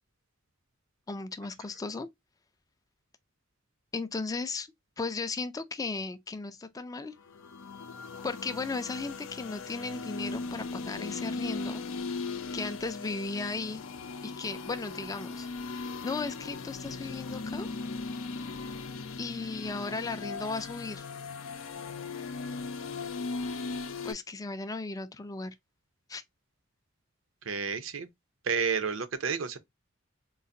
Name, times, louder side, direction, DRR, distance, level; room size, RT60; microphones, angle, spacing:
voice 1, 1.1-2.1 3.9-4.7 5.0-7.1 8.2-11.9 12.5-13.8 14.2-17.7 19.2-21.1 24.0-25.5 26.1-26.2, left 3 dB, 20° left, 0.3 m, -36 dB
sound 1, 7.2-24.1, left 4 dB, 85° left, 0.5 m, -38 dB
voice 2, 27.4-28.1 28.4-29.6, right 6 dB, 70° right, 0.6 m, -30 dB
3.8 x 2.5 x 2.6 m
head